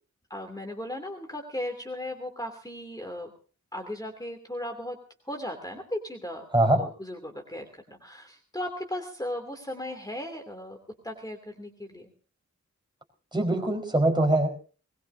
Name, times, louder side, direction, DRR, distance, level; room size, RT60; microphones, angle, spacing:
voice 1, 0.3-3.3 3.7-5.0 5.2-6.4 6.8-10.8 11.0-12.1, left 1 dB, 10° left, 4 dB, 2.8 m, -36 dB
voice 2, 13.3-14.5, right 1 dB, 15° right, 4 dB, 4.8 m, -22 dB
20.5 x 20.5 x 2.7 m, 0.39 s
wide cardioid pair, 70°, 30 cm